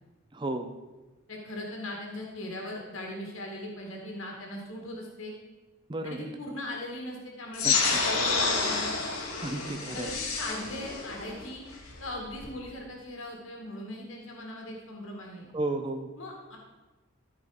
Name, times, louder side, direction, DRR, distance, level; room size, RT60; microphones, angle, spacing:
voice 1, 0.3-0.7 5.9-6.3 7.6-8.0 9.4-10.2 15.5-16.1, right 2 dB, 20° right, 5 dB, 0.6 m, -33 dB
voice 2, 1.3-5.4 6.0-9.0 9.9-11.7 12.0-15.5 16.2-16.6, left 1 dB, 65° left, 0 dB, 1.9 m, -39 dB
sound 1, 7.5-12.6, left 4 dB, 80° left, 1.7 m, -29 dB
14.0 x 5.1 x 4.8 m, 1.2 s
head